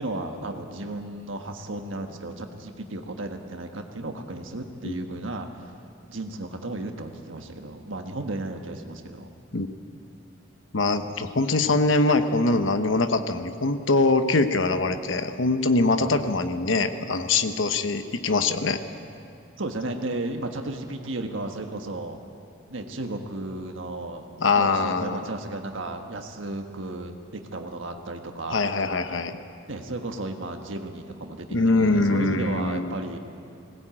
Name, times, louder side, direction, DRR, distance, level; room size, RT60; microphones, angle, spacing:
voice 1, 0.0-5.7 6.1-9.7 16.0-16.2 19.6-22.2 22.7-24.3 24.6-28.6 29.7-33.2, right 2 dB, 85° right, 4 dB, 1.4 m, -34 dB
voice 2, 10.7-18.8 24.4-25.2 28.5-29.3 31.5-33.0, left 3 dB, 75° left, 8 dB, 1.0 m, -23 dB
20.5 x 17.0 x 8.9 m, 2.6 s
head